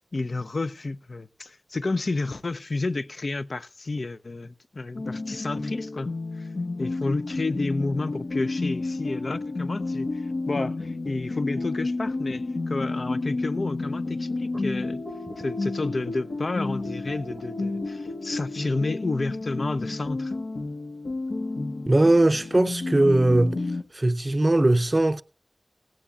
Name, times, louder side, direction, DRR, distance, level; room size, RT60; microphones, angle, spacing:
voice 1, 0.1-6.5 6.8-15.0 15.4-20.3, left 3 dB, 65° left, 0.5 m, -31 dB
sound 1, 4.9-23.8, left 3 dB, 90° left, 1.2 m, -31 dB
voice 2, 21.9-23.6 23.9-25.2, right 2 dB, 35° right, 0.6 m, -20 dB
17.0 x 16.5 x 2.4 m
wide cardioid pair, 60°, 0 cm